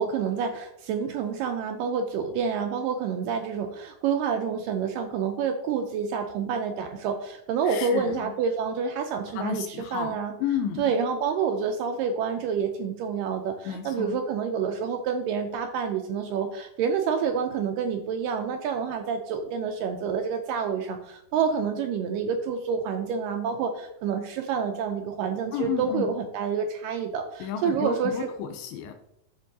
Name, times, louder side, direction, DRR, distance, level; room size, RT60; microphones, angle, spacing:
voice 1, 0.0-10.3 10.8-28.3, right 6 dB, 80° right, 5 dB, 2.0 m, -28 dB
voice 2, 7.6-8.3 9.3-10.8 13.7-14.2 25.5-26.1 27.4-28.9, left 8 dB, 85° left, 5 dB, 2.4 m, -32 dB
13.0 x 4.5 x 2.7 m, 0.80 s
omnidirectional pair, 4.2 m